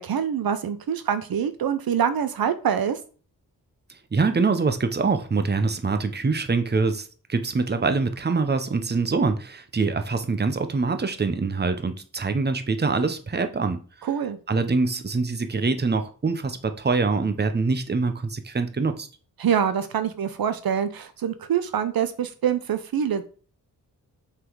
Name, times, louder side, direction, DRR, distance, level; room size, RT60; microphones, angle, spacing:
voice 1, 0.0-3.0 14.0-14.4 19.4-23.3, right 8 dB, 70° right, 11 dB, 0.7 m, -25 dB
voice 2, 4.1-13.8 14.5-19.1, right 4 dB, 30° right, 8 dB, 0.9 m, -24 dB
5.7 x 4.1 x 4.7 m, 0.39 s
cardioid pair, 65°, 37 cm